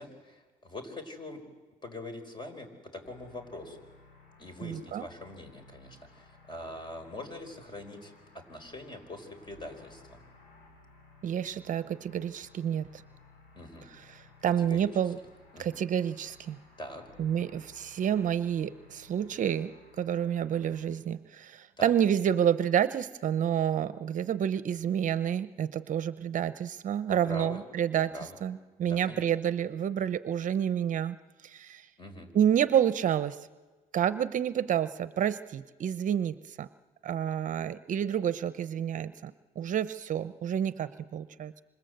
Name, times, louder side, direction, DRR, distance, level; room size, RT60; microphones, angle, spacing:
voice 1, 0.0-1.4 1.8-3.8 4.4-10.2 13.5-13.9 14.6-14.9 15.5-15.8 16.8-17.0 21.8-21.9 27.1-27.6 28.1-28.4 28.8-29.2 32.0-32.3, left 1 dB, 25° left, 7 dB, 5.0 m, -43 dB
sound 1, 3.0-20.8, left 3 dB, 70° left, 7.4 m, -57 dB
voice 2, 4.6-5.1 11.2-13.0 13.9-15.2 15.6-16.6 17.2-28.1 28.4-31.2 31.4-31.9 32.3-33.4 33.9-36.7 37.0-41.6, right 9 dB, 50° right, 14 dB, 0.8 m, -29 dB
27.5 x 26.0 x 8.0 m, 1.3 s
cardioid pair, 110°, 17 cm